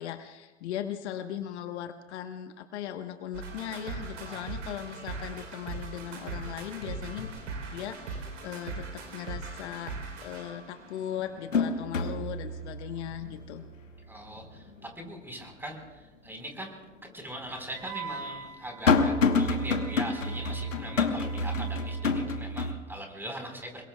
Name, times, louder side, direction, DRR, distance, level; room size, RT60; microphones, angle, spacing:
voice 1, 0.0-7.3 7.7-13.6, left 10 dB, 60° left, 8 dB, 1.2 m, -38 dB
sound 1, 3.3-12.8, right 4 dB, 70° right, 3.7 m, -41 dB
sound 2, 3.5-3.6 4.1-4.6 5.0-5.8 6.0-8.3 8.7-8.8 10.2-10.3 10.8-16.0 16.4-16.5 17.4-22.7, left 4 dB, 90° left, 1.3 m, -30 dB
voice 2, 14.1-16.8 17.1-23.9, right 1 dB, 5° right, 2 dB, 4.3 m, -41 dB
Wind instrument woodwind instrument, 17.8-22.4, right 5 dB, 45° right, 2.3 m, -45 dB
28.0 x 22.5 x 2.3 m, 1.2 s
hypercardioid pair, 95°, 38 cm